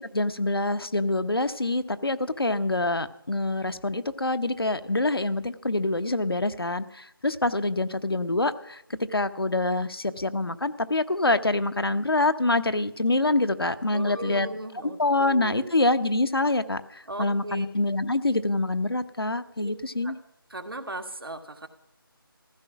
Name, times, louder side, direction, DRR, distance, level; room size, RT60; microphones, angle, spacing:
voice 1, 0.1-8.8 9.1-14.5 15.0-20.2, left 2 dB, 80° left, 11 dB, 1.0 m, -26 dB
voice 2, 13.9-15.8 17.1-17.7 19.6-19.7 20.0-20.1 20.5-21.7, right 1 dB, 75° right, 6 dB, 1.9 m, -37 dB
15.0 x 13.5 x 6.0 m, 0.78 s
figure-of-eight pair, 165°, 12 cm